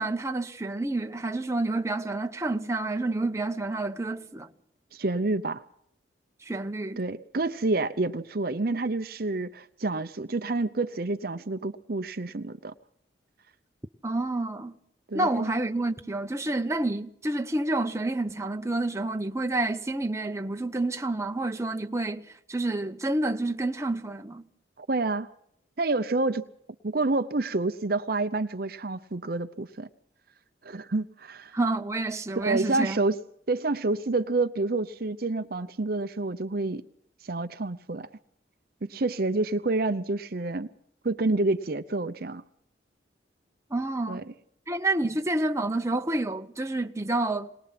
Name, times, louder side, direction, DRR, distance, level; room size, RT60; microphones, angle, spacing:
voice 1, 0.0-4.5 6.4-7.0 14.0-14.7 15.1-24.4 31.5-33.0 43.7-44.2 44.7-47.6, right 2 dB, 15° right, 0.9 m, -29 dB
voice 2, 4.9-5.6 7.0-12.7 15.1-15.5 24.8-25.3 25.8-26.4 26.8-29.9 30.6-31.6 32.3-33.2 33.5-36.8 37.2-38.1 38.8-40.7 41.0-42.4 44.1-44.2, right 2 dB, 50° right, 0.7 m, -28 dB
22.0 x 20.0 x 5.9 m
head